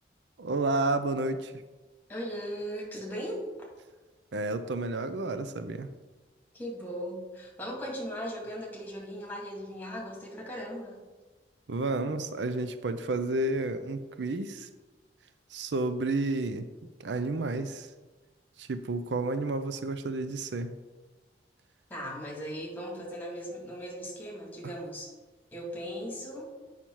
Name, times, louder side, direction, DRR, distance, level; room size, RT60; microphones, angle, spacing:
voice 1, 0.4-1.5 4.3-5.9 11.7-14.7 15.5-16.7 17.0-17.9 18.6-20.7, right 2 dB, 80° right, 11 dB, 0.5 m, -31 dB
voice 2, 2.1-3.4 6.5-11.0 21.9-25.1 25.5-26.5, equal, 10° left, -3 dB, 2.1 m, -38 dB
8.7 x 5.7 x 4.6 m, 1.2 s
head